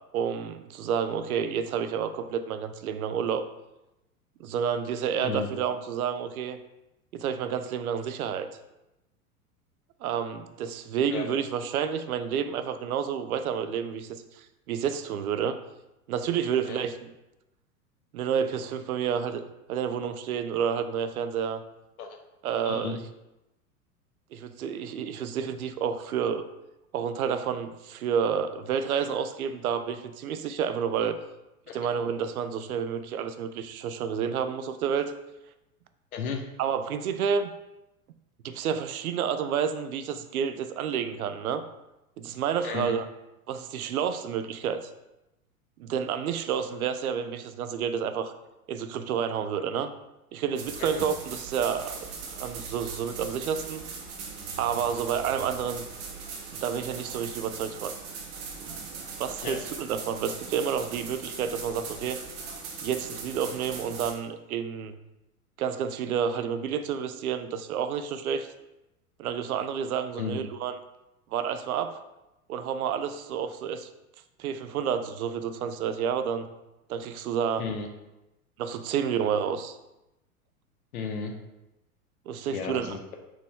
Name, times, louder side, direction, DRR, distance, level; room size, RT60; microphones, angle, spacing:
voice 1, 0.1-3.5 4.4-6.6 7.1-8.5 10.0-15.6 16.1-17.1 18.1-19.4 19.7-21.6 22.4-23.0 24.3-26.5 26.9-31.2 31.7-35.1 36.6-37.5 38.4-41.6 42.2-43.1 43.5-44.9 45.8-48.3 48.7-49.9 50.3-52.0 52.4-53.8 54.5-55.9 56.6-58.0 58.6-62.2 62.8-65.0 65.6-68.5 69.2-70.8 71.3-72.0 72.5-73.9 74.4-76.5 76.9-77.7 78.6-79.8 82.3-83.0, right 7 dB, 70° right, 10 dB, 0.5 m, -30 dB
voice 2, 22.6-23.0 31.7-31.9 36.1-36.4 42.6-42.9 50.8-51.0 59.4-59.6 70.2-70.4 77.6-77.9 80.9-81.3 82.5-83.2, left 5 dB, 70° left, 4 dB, 0.9 m, -34 dB
sound 1, 50.5-64.1, right 5 dB, 45° right, 1.0 m, -40 dB
4.3 x 2.9 x 3.5 m, 0.94 s
figure-of-eight pair, 95°, 45 cm